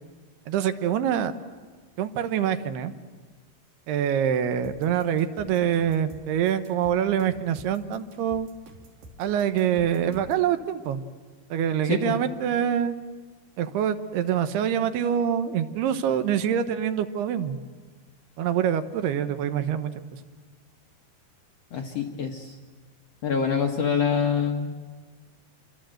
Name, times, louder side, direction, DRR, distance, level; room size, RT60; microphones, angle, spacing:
voice 1, 0.5-1.3 2.0-2.9 3.9-8.5 9.2-11.0 11.5-13.0 13.6-17.6 18.4-20.2, right 9 dB, 80° right, 10 dB, 3.0 m, -25 dB
sound 1, 4.6-10.5, right 1 dB, 60° right, 4.5 m, -48 dB
voice 2, 11.8-12.2 21.7-22.5 23.2-24.7, left 6 dB, 60° left, 2 dB, 1.7 m, -25 dB
28.0 x 25.0 x 7.8 m, 1.5 s
omnidirectional pair, 4.7 m